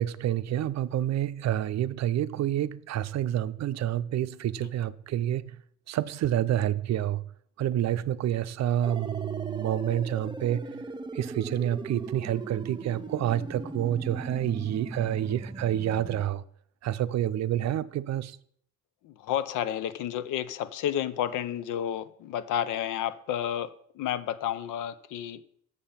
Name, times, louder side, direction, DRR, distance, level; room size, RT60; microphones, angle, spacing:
voice 1, 0.0-5.6 5.9-7.2 7.6-10.8 11.1-16.4 16.8-18.4, right 11 dB, 60° right, 0.5 m, -28 dB
sound 1, 8.8-16.2, right 3 dB, 15° right, 0.6 m, -39 dB
voice 2, 19.0-25.4, left 10 dB, 90° left, 0.7 m, -31 dB
6.8 x 6.8 x 5.6 m
cardioid pair, 90°, 30 cm